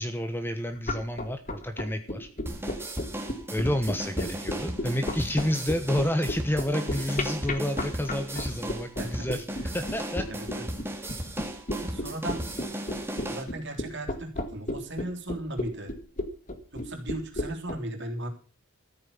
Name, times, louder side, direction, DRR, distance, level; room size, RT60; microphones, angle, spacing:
voice 1, 0.0-2.3 3.5-10.3, left 1 dB, 10° left, 8 dB, 1.1 m, -30 dB
sound 1, 0.8-17.8, left 1 dB, 35° left, 1.7 m, -33 dB
sound 2, 2.5-13.4, right 1 dB, 10° right, 2.1 m, -36 dB
voice 2, 10.3-10.7 11.8-12.4 13.3-15.9 16.7-18.3, right 1 dB, 50° right, 4 dB, 3.4 m, -36 dB
14.0 x 9.0 x 7.1 m, 0.36 s
head